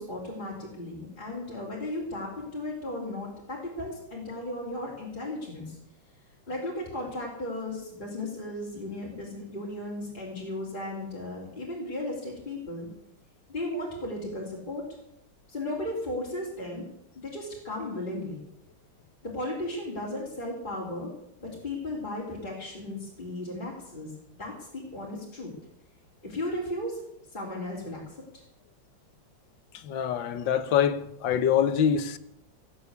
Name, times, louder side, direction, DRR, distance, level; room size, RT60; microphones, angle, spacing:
voice 1, 0.0-5.8 6.5-12.9 13.5-14.8 15.5-16.9 17.2-18.4 19.2-21.1 21.4-24.1 24.4-25.5 26.2-27.0 27.3-28.0, left 1 dB, 25° left, 3.8 m, -35 dB
voice 2, 29.7-32.2, left 8 dB, 75° left, 1.6 m, -25 dB
19.5 x 8.3 x 8.3 m
omnidirectional pair, 2.1 m